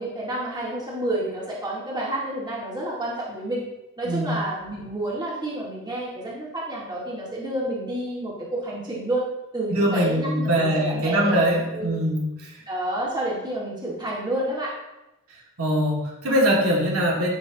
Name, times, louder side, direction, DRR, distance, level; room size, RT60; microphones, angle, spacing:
voice 1, 0.0-3.6 4.0-9.2 9.5-11.5 11.7-12.0 12.7-14.7, right 1 dB, 20° right, -6 dB, 2.0 m, -29 dB
voice 2, 4.0-4.4 9.7-12.5 15.6-17.3, equal, 70° right, -3 dB, 2.2 m, -22 dB
12.5 x 6.3 x 2.9 m, 0.98 s
head